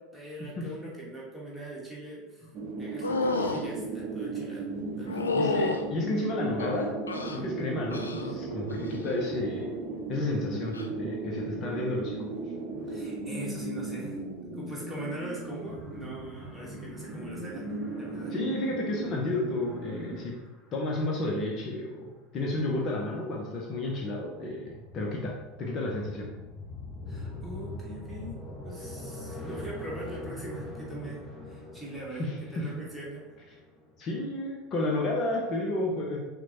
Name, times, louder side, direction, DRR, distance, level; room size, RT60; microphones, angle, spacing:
voice 1, 0.1-2.5 2.8-4.7 5.0-5.3 12.9-14.2 14.5-18.3 27.1-28.4 28.6-31.2 31.5-32.2 32.5-33.2, right 1 dB, 5° right, -5 dB, 1.3 m, -41 dB
sound 1, 2.5-20.2, right 3 dB, 40° right, 0.6 m, -36 dB
sound 2, 3.0-3.6 5.1-5.8 6.6-7.4 7.9-8.3 8.7-9.1 10.7-10.9, left 3 dB, 80° left, 0.3 m, -30 dB
voice 2, 5.3-7.0 7.3-9.7 10.1-12.3 18.3-20.3 20.7-25.3 25.6-26.5 32.2-32.7 34.0-36.2, left 2 dB, 40° left, -1 dB, 0.6 m, -31 dB
sound 3, 15.7-20.6 23.1-34.6, left 2 dB, 20° left, 1.0 m, -44 dB
5.9 x 2.1 x 2.8 m, 1.1 s
figure-of-eight pair, 75°, 0 cm